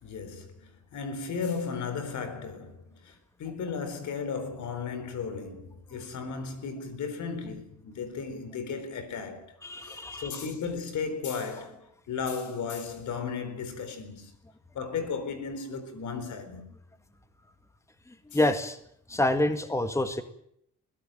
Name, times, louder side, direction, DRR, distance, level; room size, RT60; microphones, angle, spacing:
voice 1, 0.0-3.1 3.4-9.5 9.8-14.3 14.7-16.7, left 5 dB, 70° left, 4.2 m, -35 dB
voice 2, 9.6-10.4 18.3-18.8 19.1-20.2, left 1 dB, 10° left, 1.8 m, -27 dB
22.0 x 16.5 x 9.2 m
cardioid pair, 90°, 30 cm